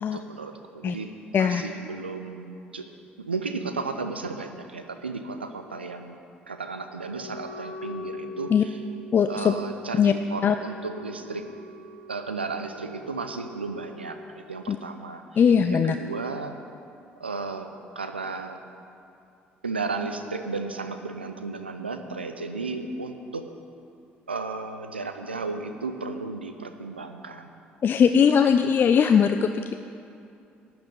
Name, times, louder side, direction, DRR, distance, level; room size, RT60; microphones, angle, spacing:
voice 1, 0.1-2.9 3.2-6.2 6.5-8.8 9.3-11.5 12.1-15.4 15.7-16.6 17.2-17.7 18.0-18.6 19.6-23.5 24.3-27.5, right 3 dB, 85° right, 7 dB, 0.5 m, -34 dB
Wind instrument woodwind instrument, 7.1-14.1, left 1 dB, 85° left, 1.0 m, -43 dB
voice 2, 9.1-9.5 10.0-10.1 10.4-10.6 14.7-14.8 15.4-15.9 27.8-29.7, left 7 dB, 35° left, 8 dB, 0.4 m, -20 dB
11.5 x 5.9 x 8.6 m, 2.6 s
figure-of-eight pair, 50°, 6 cm